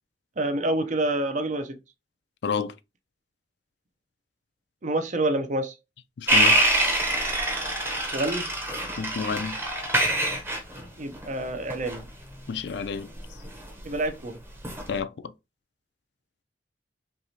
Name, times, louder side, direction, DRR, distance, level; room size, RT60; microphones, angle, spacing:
voice 1, 0.4-1.8 4.8-5.7 8.1-8.5 11.0-12.1 13.8-14.4, right 1 dB, 45° right, 0.6 m, -27 dB
voice 2, 2.4-2.7 6.2-6.6 9.0-9.5 12.5-13.1 14.9-15.3, left 5 dB, 65° left, 0.4 m, -30 dB
sound 1, 6.3-14.1 14.6-15.0, right 1 dB, 15° right, 0.8 m, -25 dB
4.7 x 2.9 x 2.7 m
head